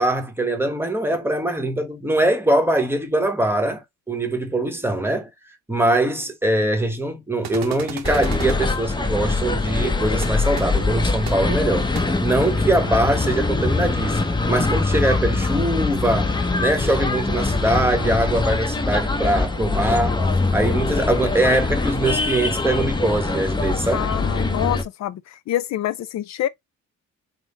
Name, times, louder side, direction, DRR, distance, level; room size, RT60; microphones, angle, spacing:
voice 1, 0.0-5.3 5.7-20.2 20.5-24.1, right 1 dB, 10° right, 0.9 m, -22 dB
sound 1, 7.4-8.6 10.2-10.3 10.6-10.7 11.3-11.4 11.9-12.0, right 9 dB, 65° right, 0.7 m, -34 dB
sound 2, 8.0-24.8, left 3 dB, 15° left, 0.6 m, -23 dB
voice 2, 23.9-26.5, left 12 dB, 65° left, 0.5 m, -26 dB
3.7 x 2.1 x 3.6 m
cardioid pair, 90°, 30 cm